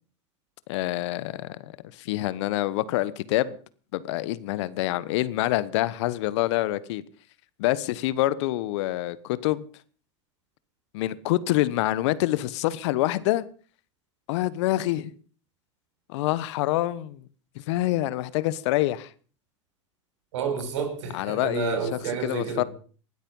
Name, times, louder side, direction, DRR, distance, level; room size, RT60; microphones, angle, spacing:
voice 1, 0.7-3.6 3.9-7.0 7.6-9.7 10.9-13.4 14.3-15.1 16.1-17.2 17.7-19.1 21.1-21.8 22.2-22.6, left 16 dB, 65° left, 1.2 m, -26 dB
voice 2, 20.3-22.7, right 6 dB, 70° right, 5.3 m, -30 dB
19.5 x 13.0 x 5.5 m
hypercardioid pair, 100°, 16 cm